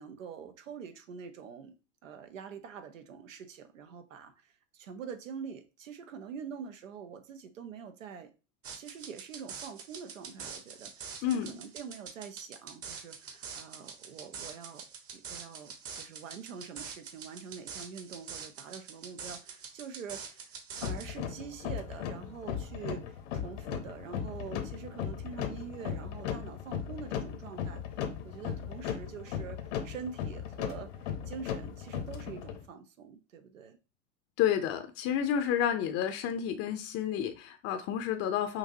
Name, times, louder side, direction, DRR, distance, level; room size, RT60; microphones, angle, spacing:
voice 1, 0.0-1.7 2.0-8.3 8.7-14.9 15.1-27.8 28.2-33.8, right 7 dB, 85° right, 0.8 m, -45 dB
sound 1, 8.6-21.1, right 6 dB, 35° right, 1.0 m, -45 dB
sound 2, 20.8-32.6, left 8 dB, 70° left, 0.9 m, -37 dB
voice 2, 34.4-38.6, left 9 dB, 40° left, 0.6 m, -30 dB
5.8 x 2.7 x 2.8 m
hypercardioid pair, 100°, 38 cm